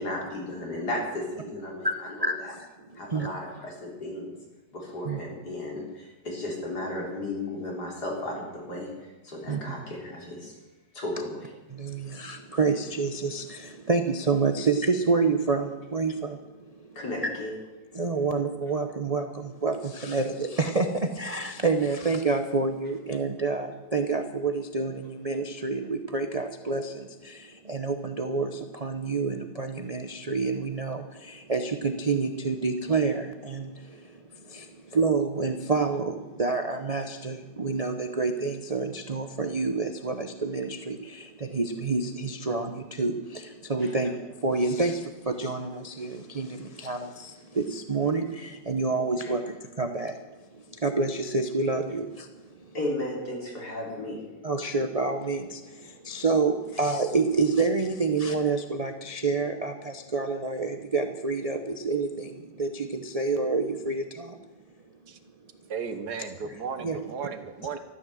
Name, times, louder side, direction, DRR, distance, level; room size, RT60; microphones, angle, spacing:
voice 1, 0.0-2.5 2.9-4.3 4.7-8.9 9.2-10.5 10.9-11.5 17.0-17.5 43.8-43.9 49.2-49.3 52.7-54.2, left 1 dB, 55° left, -1 dB, 4.3 m, -34 dB
voice 2, 1.8-3.3 5.0-5.2 9.5-9.7 11.7-16.9 17.2-17.3 17.9-52.7 54.4-64.4 66.8-67.0, right 4 dB, 40° right, 6 dB, 0.5 m, -28 dB
voice 3, 65.7-67.8, right 6 dB, 60° right, 9 dB, 1.7 m, -35 dB
14.0 x 12.5 x 7.7 m, 1.2 s
omnidirectional pair, 2.0 m